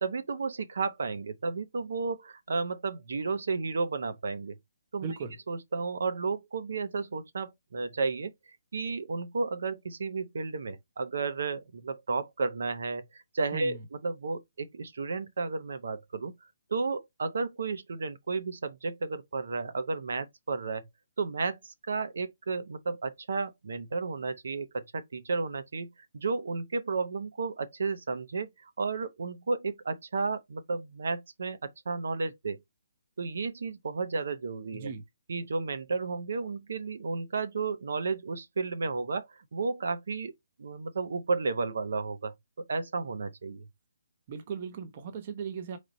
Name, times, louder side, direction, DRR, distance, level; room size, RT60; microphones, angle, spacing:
voice 1, 0.0-4.6 4.9-5.2 5.5-8.3 8.7-16.3 16.7-20.9 21.2-25.9 26.1-32.6 33.2-34.9 35.3-40.3 40.6-42.3 42.7-43.6, right 4 dB, 65° right, 0.8 m, -33 dB
voice 2, 5.0-5.4 13.5-13.8 34.7-35.0 44.3-45.8, right 5 dB, 25° right, 0.7 m, -37 dB
3.9 x 3.2 x 4.1 m
hypercardioid pair, 175°, 0 cm